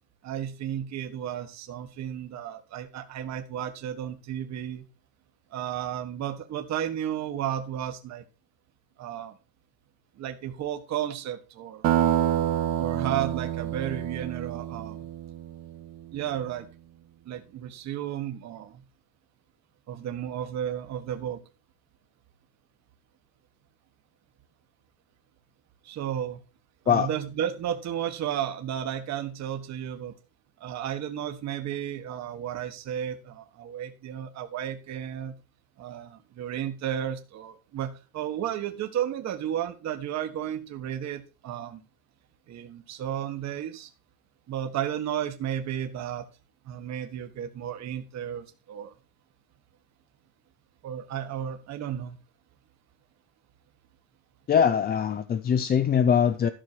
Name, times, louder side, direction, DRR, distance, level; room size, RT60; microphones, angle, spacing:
voice 1, 0.2-4.8 5.5-8.2 9.0-9.4 10.2-11.8 12.8-15.0 16.1-16.7 17.2-18.8 19.9-21.4 25.8-26.4 26.8-30.1 30.6-35.3 35.8-41.8 42.5-43.9 44.5-46.2 46.6-48.9 50.8-52.2, right 10 dB, 40° right, 1.5 m, -33 dB
sound 1, 11.8-16.1, right 11 dB, 60° right, 1.8 m, -27 dB
voice 2, 54.5-56.5, left 7 dB, 25° left, 0.5 m, -22 dB
13.0 x 6.5 x 4.5 m
cardioid pair, 165°, 40 cm